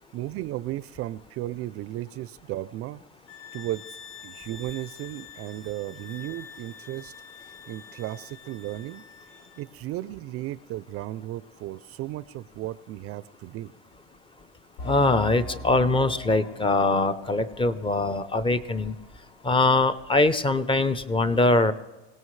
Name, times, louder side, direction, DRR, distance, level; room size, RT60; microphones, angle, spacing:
voice 1, 0.1-3.0 3.5-7.1 7.4-9.0 9.6-13.7, right 15 dB, 45° right, 16 dB, 0.5 m, -35 dB
sound 1, 3.3-9.7, left 7 dB, 55° left, 4.5 m, -46 dB
sound 2, 14.8-19.1 19.4-19.5 20.0-20.1, left 1 dB, 90° left, 3.5 m, -41 dB
voice 2, 14.8-18.9 19.4-21.7, left 2 dB, 15° left, 11 dB, 0.7 m, -22 dB
25.0 x 17.5 x 3.2 m, 1.1 s
supercardioid pair, 120°, 33 cm